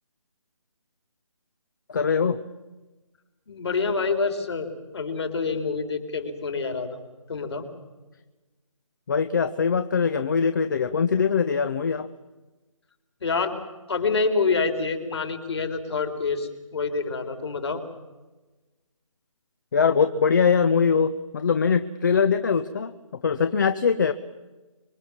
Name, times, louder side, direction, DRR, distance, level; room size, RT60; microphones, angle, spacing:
voice 1, 1.9-2.4 9.1-12.1 19.7-22.9 23.2-24.1, left 6 dB, 35° left, 11 dB, 0.9 m, -22 dB
voice 2, 3.5-7.0 7.3-7.7 13.2-13.5 13.9-17.8, left 4 dB, 50° left, 6 dB, 4.3 m, -27 dB
25.5 x 23.5 x 7.4 m, 1.2 s
figure-of-eight pair, 160°, 18 cm